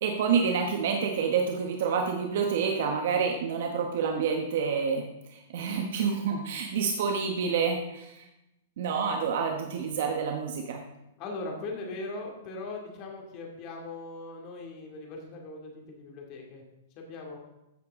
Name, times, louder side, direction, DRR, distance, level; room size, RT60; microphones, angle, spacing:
voice 1, 0.0-5.0 5.3-8.2 8.8-10.8, right 6 dB, 60° right, 2 dB, 1.2 m, -28 dB
voice 2, 11.2-16.6 17.0-17.4, left 3 dB, 30° left, 1 dB, 2.4 m, -39 dB
14.5 x 6.9 x 3.7 m, 0.92 s
hypercardioid pair, 160°, 0 cm